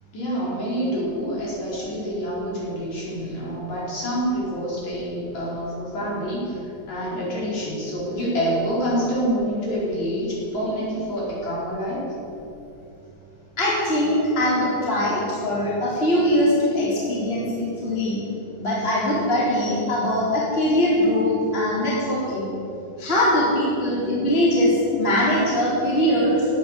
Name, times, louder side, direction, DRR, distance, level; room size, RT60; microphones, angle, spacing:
voice 1, 0.1-12.1, equal, 50° left, -6 dB, 6.0 m, -27 dB
voice 2, 13.6-18.2 18.6-22.5 23.0-26.5, left 1 dB, 15° left, -6 dB, 3.6 m, -21 dB
17.0 x 10.0 x 7.6 m, 2.8 s
omnidirectional pair, 4.3 m